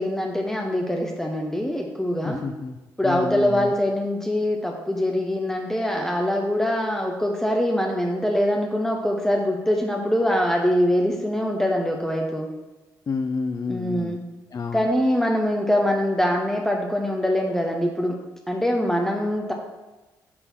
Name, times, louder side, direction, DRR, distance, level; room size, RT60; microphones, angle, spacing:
voice 1, 0.0-2.4 3.0-12.5 13.7-14.2 14.7-18.2 18.5-19.5, equal, 5° left, 0 dB, 0.9 m, -23 dB
voice 2, 2.2-3.7 13.1-14.2 14.5-14.9, left 5 dB, 40° left, 7 dB, 0.4 m, -30 dB
5.7 x 4.0 x 6.1 m, 1.1 s
hypercardioid pair, 45°, 9 cm